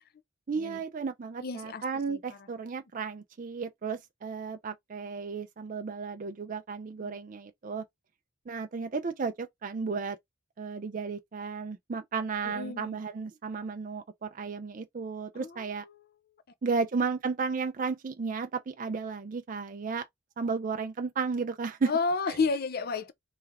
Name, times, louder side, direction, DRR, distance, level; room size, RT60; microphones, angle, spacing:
voice 1, 0.5-7.8 8.5-10.2 10.6-15.8 16.6-20.1 20.4-21.9 22.3-22.4, right 5 dB, 35° right, 0.4 m, -33 dB
voice 2, 1.4-2.4 7.0-7.1 12.4-13.0 15.3-15.5 21.9-23.1, left 4 dB, 45° left, 0.5 m, -31 dB
3.5 x 3.2 x 3.4 m
head